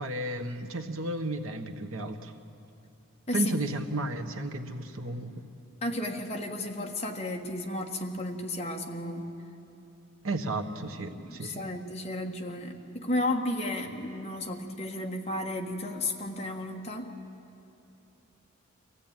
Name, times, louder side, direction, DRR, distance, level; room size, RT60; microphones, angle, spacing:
voice 1, 0.0-2.3 3.3-5.4 10.2-11.7, right 2 dB, 85° right, 5 dB, 1.3 m, -33 dB
voice 2, 5.8-9.3 11.3-17.1, left 1 dB, 30° left, 2 dB, 1.5 m, -33 dB
25.0 x 15.5 x 9.0 m, 2.8 s
head